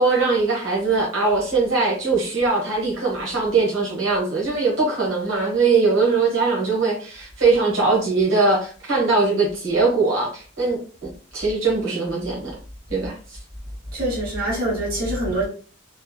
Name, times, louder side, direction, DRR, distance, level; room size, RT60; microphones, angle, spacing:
voice 1, 0.0-12.5 12.9-13.4, right 3 dB, 75° right, 1.2 m, -21 dB
voice 2, 13.9-15.5, right 1 dB, 50° right, 1.1 m, -24 dB
3.2 x 2.1 x 2.2 m
head